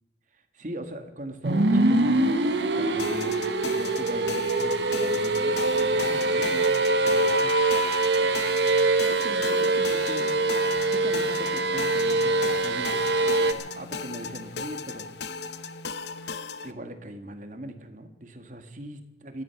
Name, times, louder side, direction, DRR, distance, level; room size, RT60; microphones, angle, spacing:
voice 1, 0.3-2.2 2.7-6.8 7.0-7.8 8.1-8.5 9.0-10.4 10.9-15.1 16.6-19.4, right 1 dB, 45° right, 7 dB, 1.7 m, -40 dB
sound 1, 1.4-13.5, right 2 dB, 75° right, 1.2 m, -24 dB
sound 2, 3.0-16.7, left 4 dB, 75° left, 0.9 m, -37 dB
17.5 x 13.5 x 5.9 m, 1.0 s
head